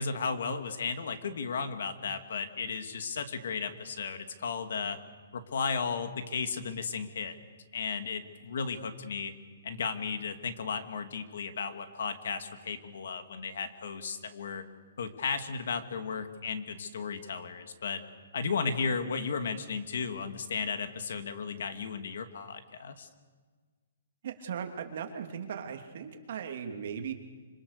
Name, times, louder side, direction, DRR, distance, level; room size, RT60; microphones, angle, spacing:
voice 1, 0.0-5.0 5.3-7.3 7.7-9.3 9.6-14.6 15.0-18.0 18.3-23.1, left 5 dB, 70° left, 8 dB, 2.4 m, -34 dB
voice 2, 24.2-27.1, right 7 dB, 55° right, 4 dB, 2.9 m, -38 dB
26.5 x 25.5 x 6.8 m, 1.5 s
hypercardioid pair, 165°, 0 cm